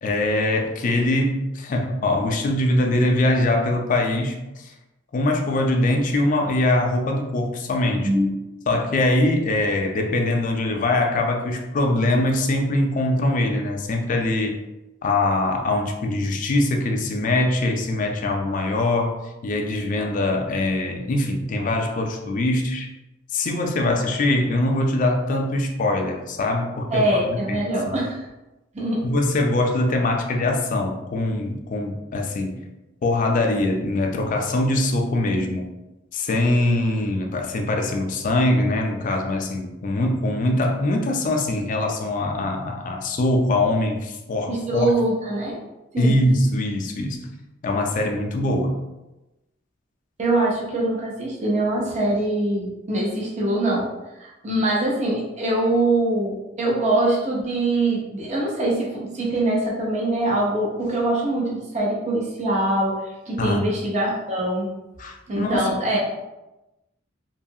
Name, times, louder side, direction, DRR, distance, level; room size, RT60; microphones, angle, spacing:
voice 1, 0.0-4.7 5.1-8.1 8.7-14.6 15.0-22.9 23.3-28.0 29.0-32.6 33.0-35.7 36.1-44.9 46.0-47.3 47.6-48.8 63.4-63.7 65.0-65.7, left 1 dB, 40° left, 3 dB, 0.4 m, -22 dB
voice 2, 26.9-28.2 28.7-29.0 44.5-45.6 45.9-46.1 50.2-53.9 54.2-62.9 63.3-64.7 65.3-66.0, right 1 dB, 35° right, -3 dB, 0.6 m, -23 dB
2.7 x 2.3 x 2.7 m, 0.99 s
head